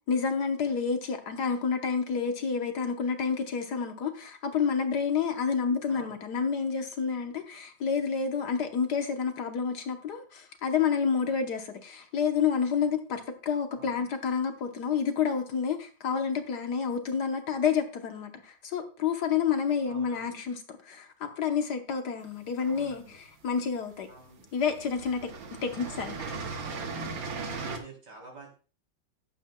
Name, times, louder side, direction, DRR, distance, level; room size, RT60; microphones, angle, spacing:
voice 1, 0.1-24.1 24.5-25.3 25.6-26.2, left 6 dB, 60° left, 1.5 m, -29 dB
voice 2, 5.9-6.2 13.7-14.1 19.8-20.4 22.6-23.2 24.1-24.5 25.8-26.4 27.4-28.5, right 3 dB, 60° right, 4.0 m, -49 dB
sound 1, 22.4-23.3 24.1-24.3 24.6-27.8, right 4 dB, 80° right, 2.1 m, -37 dB
14.5 x 10.5 x 2.2 m
omnidirectional pair, 2.1 m